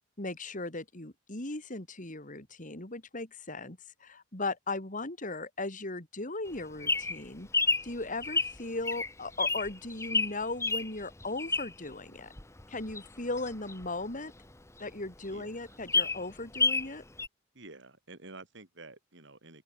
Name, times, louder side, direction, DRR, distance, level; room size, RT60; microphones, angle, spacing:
voice 1, 0.2-7.5 7.8-12.3 12.7-14.3 14.8-17.0, left 2 dB, 40° left, 3.4 m, -37 dB
Bird vocalization bird call bird song, 6.5-11.9 12.4-14.5 14.9-15.0 15.2-15.3 15.7-16.9 17.2-17.3, left 3 dB, 15° left, 1.2 m, -30 dB
voice 2, 15.3-15.8 17.5-19.6, right 2 dB, 65° right, 5.8 m, -50 dB
open air
head